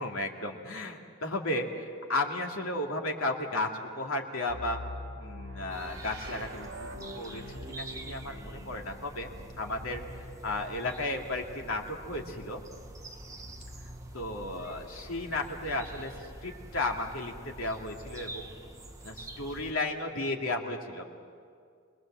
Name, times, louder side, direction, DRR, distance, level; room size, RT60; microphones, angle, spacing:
voice 1, 0.0-4.8 5.2-6.9 7.1-9.3 9.6-10.0 10.4-12.6 14.1-16.2 16.4-18.5 19.0-21.1, left 2 dB, 90° left, 1 dB, 2.5 m, -34 dB
sound 1, 4.5-14.3 15.3-16.3, left 1 dB, 70° right, 3.8 m, -46 dB
sound 2, 5.7-19.7, right 1 dB, 15° right, 1.3 m, -46 dB
28.5 x 21.0 x 7.6 m, 2.2 s
head